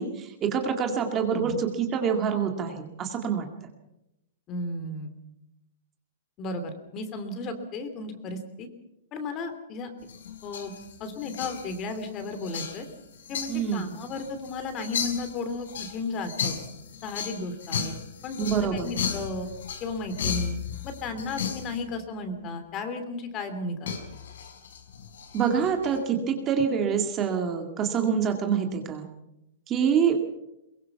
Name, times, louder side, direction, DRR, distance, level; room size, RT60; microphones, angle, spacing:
voice 1, 0.0-3.5 13.5-13.9 18.4-18.9 25.3-29.1 29.7-30.2, right 7 dB, 20° right, 4 dB, 2.0 m, -26 dB
voice 2, 4.5-5.1 6.4-8.7 9.1-9.9 10.4-10.7 11.0-12.9 13.3-16.6 17.0-17.9 18.2-19.5 19.8-24.0, left 3 dB, 20° left, 9 dB, 2.8 m, -34 dB
sound 1, 10.0-21.8 23.9-26.0, left 7 dB, 80° left, 5.3 m, -35 dB
23.0 x 22.5 x 5.9 m, 0.87 s
supercardioid pair, 170°, 0 cm